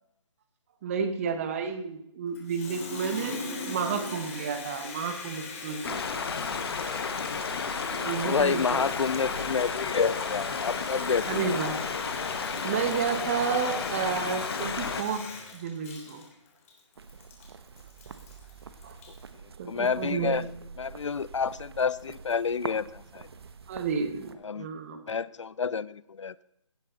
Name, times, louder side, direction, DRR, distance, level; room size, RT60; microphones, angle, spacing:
voice 1, 0.8-6.3 8.0-8.8 11.3-11.8 12.6-15.2 15.5-16.2 18.8-19.0 19.6-20.4 23.7-25.0, right 6 dB, 25° right, 8 dB, 1.5 m, -31 dB
Water tap faucet, 2.3-19.3, left 4 dB, 30° left, 3.0 m, -40 dB
sound 1, 5.8-15.0, left 5 dB, 50° left, 1.5 m, -32 dB
voice 2, 8.2-11.6 19.6-20.4 20.8-23.3 24.4-24.7 25.1-26.3, left 6 dB, 70° left, 21 dB, 0.5 m, -29 dB
sound 2, 17.0-24.3, right 5 dB, 55° right, 1.2 m, -45 dB
17.0 x 11.0 x 4.1 m, 0.78 s
hypercardioid pair, 160°, 16 cm